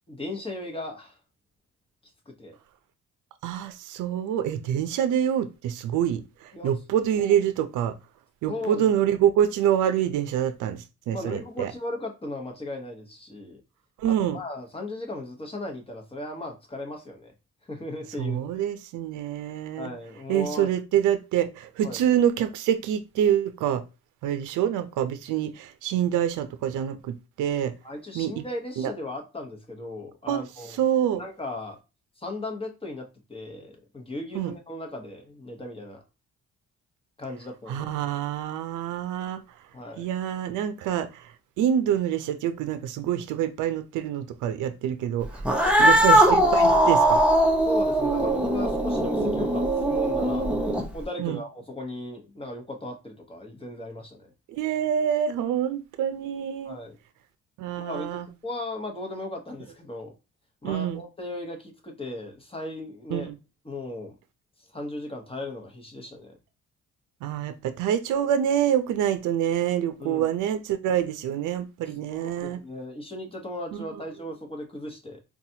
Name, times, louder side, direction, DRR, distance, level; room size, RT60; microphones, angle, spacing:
voice 1, 0.1-1.2 2.3-2.6 6.5-6.7 7.2-7.3 8.5-8.9 11.1-13.6 14.1-17.3 17.7-18.4 19.8-20.7 21.8-22.0 27.8-30.8 31.1-31.8 32.2-36.0 37.2-37.9 39.7-40.1 45.6-46.1 46.4-46.5 47.6-50.5 50.9-54.2 56.6-57.0 57.8-60.1 60.6-63.3 63.6-64.1 64.7-66.3 70.0-70.3 72.1-75.2, left 1 dB, 20° left, 1.0 m, -36 dB
voice 2, 3.4-8.0 8.4-11.7 14.0-14.4 18.2-19.9 20.3-23.8 24.2-27.7 28.1-28.4 28.8-28.9 30.3-30.4 30.8-31.2 34.3-34.5 37.7-39.4 40.0-45.4 45.8-47.2 51.2-51.4 54.5-56.8 57.6-58.3 60.6-61.0 63.1-63.4 67.2-72.6 73.7-73.8, right 10 dB, 85° right, 0.5 m, -26 dB
Cat, 45.4-51.0, right 1 dB, 5° right, 0.6 m, -20 dB
4.0 x 2.3 x 2.7 m
cardioid pair, 90°, 30 cm